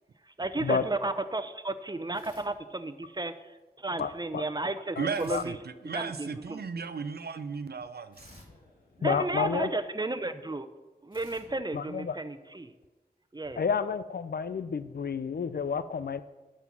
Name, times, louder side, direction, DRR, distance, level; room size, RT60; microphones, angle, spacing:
voice 1, 0.4-3.3 3.8-5.6 5.8-6.6 9.0-10.7 11.0-12.7 13.3-13.6, right 2 dB, 25° right, 0.8 m, -33 dB
sound 1, 2.1-3.3 5.1-6.5 8.1-9.8 11.1-12.7, left 1 dB, 60° left, 2.8 m, -57 dB
voice 2, 4.0-4.4 5.0-5.4 9.0-9.7 11.7-12.2 13.6-16.2, left 6 dB, 75° left, 0.5 m, -30 dB
voice 3, 5.0-8.4, right 5 dB, 80° right, 0.5 m, -35 dB
12.0 x 5.7 x 6.1 m
cardioid pair, 45°, 16 cm